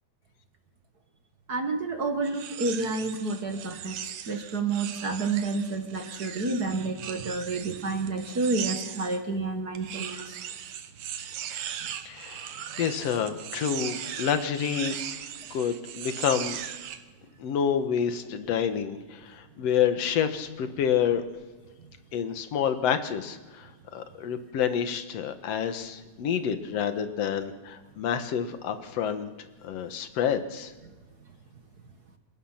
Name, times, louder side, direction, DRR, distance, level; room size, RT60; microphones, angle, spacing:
voice 1, 1.5-4.0 4.3-10.4, right 3 dB, 40° right, 5 dB, 1.7 m, -29 dB
sound 1, 2.2-9.2 9.7-17.0, right 9 dB, 80° right, 2.7 m, -38 dB
voice 2, 12.0-15.0 15.5-16.6 17.4-21.2 22.1-29.3 29.6-30.7, left 8 dB, 60° left, 8 dB, 2.4 m, -28 dB
28.5 x 17.0 x 5.8 m, 1.3 s
omnidirectional pair, 3.5 m